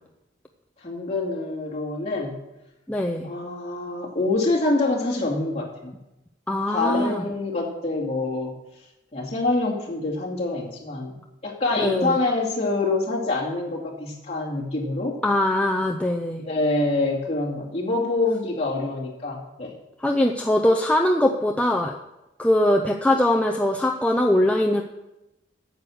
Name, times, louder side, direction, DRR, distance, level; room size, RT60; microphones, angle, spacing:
voice 1, 0.8-2.4 3.2-5.9 6.7-8.5 9.1-11.1 11.4-15.2 16.4-19.7, left 2 dB, 35° left, -4 dB, 2.4 m, -26 dB
voice 2, 2.9-3.3 6.5-7.2 11.8-12.2 15.2-16.4 20.0-21.9 22.4-24.8, left 1 dB, 5° left, 1 dB, 0.5 m, -21 dB
9.3 x 7.7 x 6.4 m, 0.95 s
head